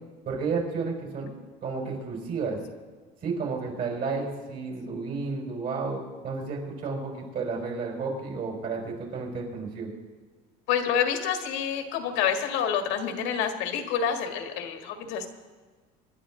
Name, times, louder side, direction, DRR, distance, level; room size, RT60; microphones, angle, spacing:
voice 1, 0.2-1.3 1.6-2.6 3.2-9.9, right 4 dB, 50° right, 0 dB, 4.9 m, -32 dB
voice 2, 10.7-15.3, left 8 dB, 75° left, 5 dB, 1.8 m, -28 dB
25.0 x 11.0 x 3.8 m, 1.4 s
cardioid pair, 130°, 20 cm